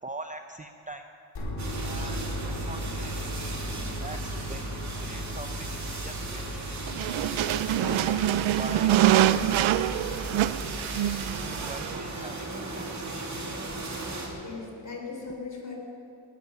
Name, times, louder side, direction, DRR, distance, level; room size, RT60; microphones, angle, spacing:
voice 1, 0.0-1.0 1.8-3.4 4.0-4.7 5.0-6.7 7.6-8.9 11.5-13.5, right 2 dB, 15° right, 5 dB, 0.6 m, -43 dB
sound 1, 1.4-12.3, equal, 60° left, 4.7 m, -37 dB
sound 2, 1.6-14.3, right 2 dB, 35° right, 2.6 m, -37 dB
sound 3, 6.9-12.0, right 12 dB, 75° right, 0.6 m, -25 dB
voice 2, 7.4-8.1 14.4-15.8, left 4 dB, 40° left, 0 dB, 4.3 m, -39 dB
19.5 x 11.5 x 5.7 m, 2.6 s
cardioid pair, 100°, 48 cm